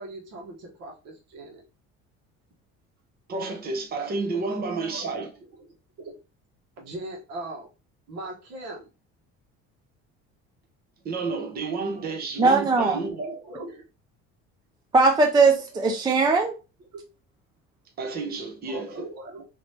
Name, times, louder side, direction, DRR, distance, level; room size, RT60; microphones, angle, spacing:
voice 1, 0.0-1.6 4.3-5.0 5.6-5.7 6.0-6.2 6.8-7.7 8.1-8.9 12.0-12.1 12.4-12.5 13.1-13.8 15.5-15.6 16.9-17.0 18.6-19.5, right 2 dB, 60° right, 1.4 m, -40 dB
voice 2, 3.3-5.3 11.0-13.4 18.0-19.0, right 3 dB, 30° right, 0.8 m, -30 dB
voice 3, 12.4-13.0 14.9-16.5, right 3 dB, 15° right, 0.3 m, -19 dB
2.9 x 2.9 x 3.2 m
cardioid pair, 135°, 29 cm